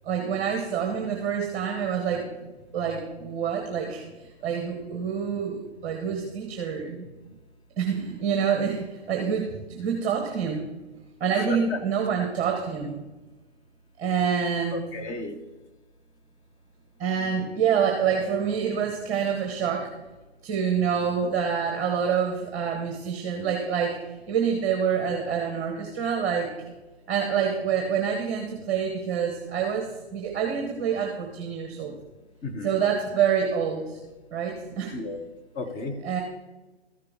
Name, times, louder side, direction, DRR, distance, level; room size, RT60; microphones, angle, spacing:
voice 1, 0.0-2.3 2.7-4.0 4.4-7.0 7.8-10.6 11.2-13.0 14.0-14.8 17.0-19.9 20.4-26.5 27.1-31.9 32.6-34.0 34.3-34.9 36.0-36.2, right 7 dB, 20° right, 2 dB, 1.2 m, -27 dB
voice 2, 11.3-11.8 14.7-15.4 32.4-32.8 34.9-35.2 35.6-36.0, left 2 dB, 15° left, 5 dB, 0.6 m, -33 dB
14.0 x 6.6 x 3.6 m, 1.1 s
figure-of-eight pair, 125°, 33 cm